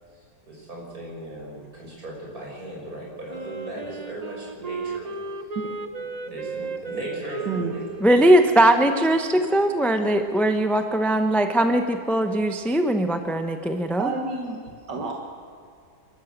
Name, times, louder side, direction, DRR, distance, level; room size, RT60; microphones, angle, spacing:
voice 1, 0.5-5.1 6.2-8.2, right 1 dB, 50° right, -2 dB, 6.6 m, -37 dB
Wind instrument woodwind instrument, 3.3-10.0, right 4 dB, 30° right, 0.8 m, -35 dB
voice 2, 7.5-7.8 14.0-14.6 14.9-15.1, right 4 dB, 75° right, 1 dB, 2.3 m, -29 dB
voice 3, 8.0-14.1, right 1 dB, ahead, 6 dB, 0.8 m, -20 dB
28.5 x 13.0 x 7.6 m, 2.4 s
omnidirectional pair, 1.9 m